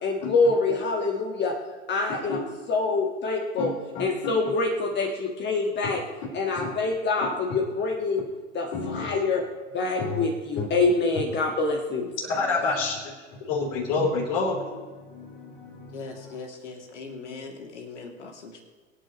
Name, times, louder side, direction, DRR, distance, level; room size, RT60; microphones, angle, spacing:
voice 1, 0.0-1.5 1.9-3.7 4.0-6.0 6.3-8.2 8.5-9.4 9.7-12.1, left 3 dB, 30° left, 1 dB, 1.6 m, -25 dB
voice 2, 3.6-4.0 8.7-9.0 10.0-10.2 10.6-10.7 12.2-13.1 13.4-16.0, left 4 dB, 50° left, -1 dB, 3.7 m, -29 dB
voice 3, 15.9-18.6, left 4 dB, 70° left, 2 dB, 2.7 m, -40 dB
24.5 x 9.2 x 3.1 m, 1.4 s
figure-of-eight pair, 90°, 36 cm